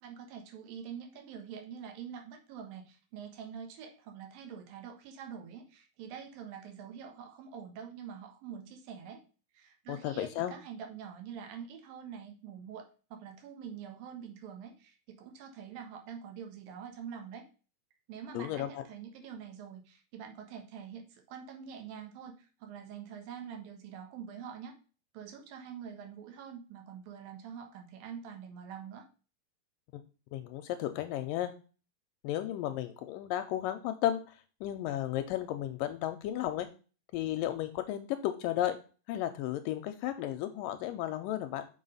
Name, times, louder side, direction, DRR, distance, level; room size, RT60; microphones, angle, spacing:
voice 1, 0.0-9.2 9.5-17.5 18.1-24.8 25.1-29.1, right 7 dB, 75° right, 4 dB, 2.9 m, -45 dB
voice 2, 9.9-10.6 18.3-18.8 29.9-30.0 30.3-31.5 32.2-36.7 37.1-38.8 39.1-41.7, left 12 dB, 80° left, 9 dB, 2.1 m, -34 dB
6.4 x 5.3 x 5.5 m, 0.36 s
omnidirectional pair, 4.3 m